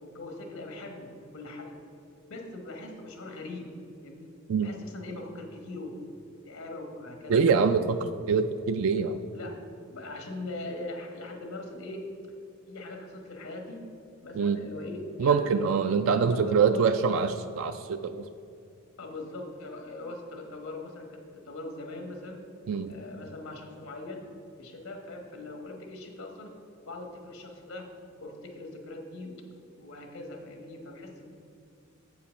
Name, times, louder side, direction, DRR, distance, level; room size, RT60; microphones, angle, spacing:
voice 1, 0.0-1.8 2.3-3.7 4.0-4.3 4.6-6.0 6.4-7.7 9.3-9.6 9.9-12.0 12.7-13.9 14.2-16.9 19.0-22.4 22.9-24.2 24.6-26.5 26.9-27.9 28.2-31.3, left 2 dB, 85° left, 3 dB, 1.3 m, -41 dB
voice 2, 7.3-9.2 14.3-14.6 15.2-18.3 22.7-23.0, right 5 dB, 65° right, 9 dB, 0.3 m, -25 dB
7.5 x 5.7 x 6.3 m, 2.5 s
head